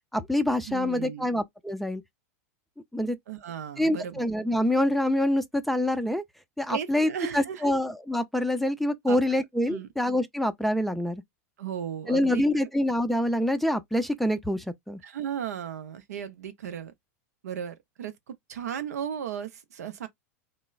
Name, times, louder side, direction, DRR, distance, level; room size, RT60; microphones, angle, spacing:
voice 1, 0.1-2.0 2.9-3.2 3.8-6.2 6.6-11.2 12.1-15.0, left 1 dB, ahead, 0.4 m, -26 dB
voice 2, 0.7-1.3 3.3-4.2 6.7-7.8 9.1-9.2 9.7-9.9 11.6-12.4 15.0-16.9 17.4-20.1, right 8 dB, 80° right, 0.5 m, -35 dB
3.0 x 2.0 x 2.3 m
hypercardioid pair, 105°, 8 cm